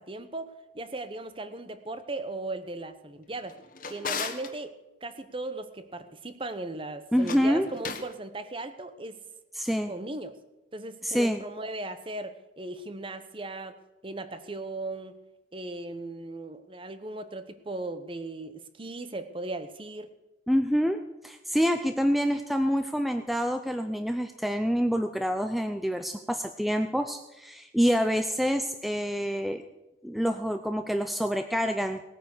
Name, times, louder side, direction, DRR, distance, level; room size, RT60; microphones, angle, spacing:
voice 1, 0.0-3.6 3.9-4.7 5.0-9.2 9.9-10.4 10.7-13.8 14.0-15.2 15.5-20.1, right 2 dB, 30° right, 10 dB, 1.0 m, -37 dB
Drawer open or close, 3.3-4.5 7.1-8.1, left 6 dB, 45° left, 1.4 m, -36 dB
voice 2, 7.1-7.7 9.5-9.9 11.0-11.4 20.5-29.6 30.0-32.0, equal, ahead, 7 dB, 0.5 m, -27 dB
18.5 x 9.0 x 6.6 m, 1.0 s
head